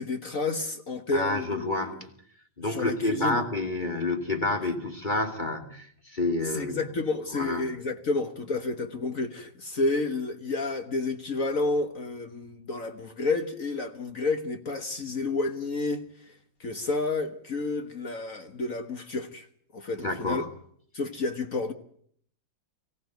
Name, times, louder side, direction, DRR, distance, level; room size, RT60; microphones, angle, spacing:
voice 1, 0.0-1.9 2.7-3.4 6.4-16.3 16.6-19.5 19.7-20.4 20.9-21.7, left 3 dB, 45° left, 1.6 m, -30 dB
voice 2, 1.1-1.9 2.6-6.8 7.3-7.7 20.0-20.5, left 2 dB, 25° left, 2.6 m, -29 dB
24.0 x 16.0 x 9.2 m
omnidirectional pair, 2.1 m